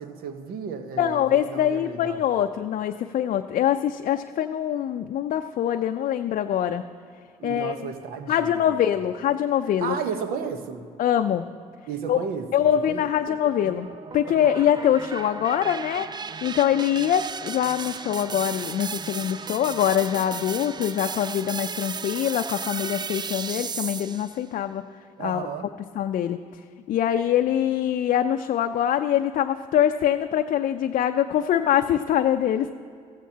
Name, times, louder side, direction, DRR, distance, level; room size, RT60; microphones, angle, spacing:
voice 1, 0.0-2.2 7.4-8.8 9.8-10.9 11.9-13.1 14.4-14.6 25.2-25.7, right 6 dB, 70° right, 8 dB, 1.0 m, -33 dB
voice 2, 1.0-6.8 7.4-7.8 8.3-9.9 11.0-11.5 12.1-12.2 12.5-13.9 14.1-24.8 25.2-25.5 26.0-26.4 26.9-32.7, left 10 dB, 55° left, 6 dB, 0.5 m, -24 dB
sound 1, 13.3-24.4, right 5 dB, 25° right, 0.4 m, -35 dB
15.5 x 14.5 x 2.9 m, 2.2 s
hypercardioid pair, 60°, 16 cm